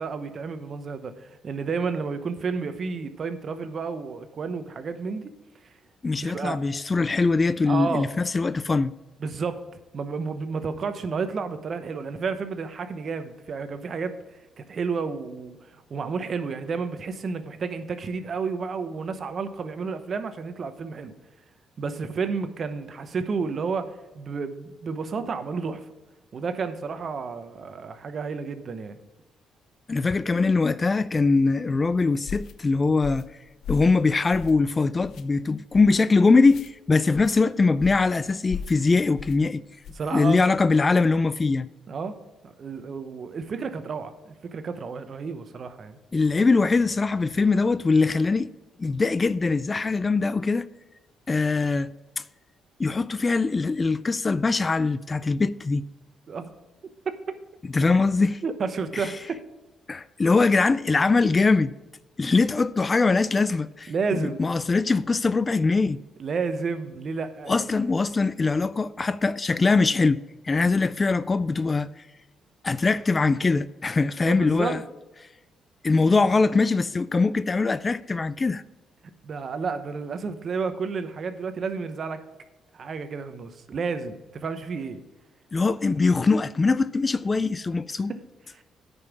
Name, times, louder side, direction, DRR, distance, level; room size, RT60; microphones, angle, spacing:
voice 1, 0.0-5.3 6.2-6.6 7.7-8.1 9.2-9.7 9.9-14.2 14.6-15.6 15.9-21.1 21.8-25.8 26.3-29.0 39.9-40.4 41.9-42.2 42.4-46.0 56.3-56.6 57.0-57.4 58.4-59.4 63.9-64.4 66.2-67.7 74.2-74.8 79.2-82.2 82.7-85.0 88.1-88.2 88.6-88.7, right 5 dB, 50° right, 0.9 m, -31 dB
voice 2, 6.0-8.9 29.9-33.3 33.7-39.6 40.1-41.7 46.1-48.5 48.8-50.7 51.3-51.9 52.8-55.9 57.7-58.4 58.9-59.1 59.9-61.7 62.2-66.0 67.5-71.9 72.6-74.8 75.8-78.6 85.5-88.1, left 3 dB, 30° left, 0.3 m, -22 dB
sound 1, 32.3-32.5 33.0-33.3 33.6-34.0 34.3-34.7 35.0-35.2 35.7-36.0 36.4-36.7 37.1-37.4 37.8-38.1 38.5-38.8 39.2-39.4 39.8-40.1, left 7 dB, 70° left, 0.6 m, -37 dB
9.6 x 5.4 x 6.0 m
cardioid pair, 90°, 0 cm